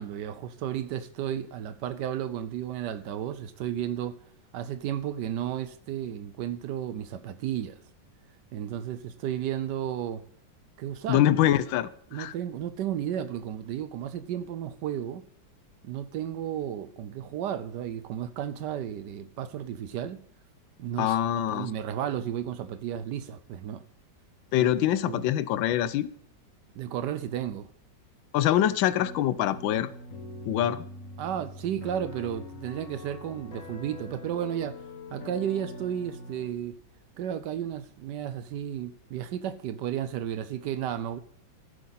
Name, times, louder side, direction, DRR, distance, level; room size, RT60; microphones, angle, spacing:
voice 1, 0.0-4.2 4.5-7.8 8.5-10.2 10.8-11.5 12.1-15.2 15.8-20.2 20.8-21.2 21.5-23.8 24.6-24.7 25.1-25.3 26.8-27.7 31.2-34.8 35.1-36.8 37.2-41.2, right 10 dB, 70° right, 1.1 m, -33 dB
voice 2, 11.1-11.9 12.1-12.3 21.0-21.7 24.5-26.1 28.3-29.9 30.5-30.8, left 12 dB, 85° left, 1.3 m, -24 dB
sound 1, 29.0-36.5, left 2 dB, 45° left, 1.8 m, -43 dB
15.0 x 7.9 x 4.1 m
omnidirectional pair, 2.1 m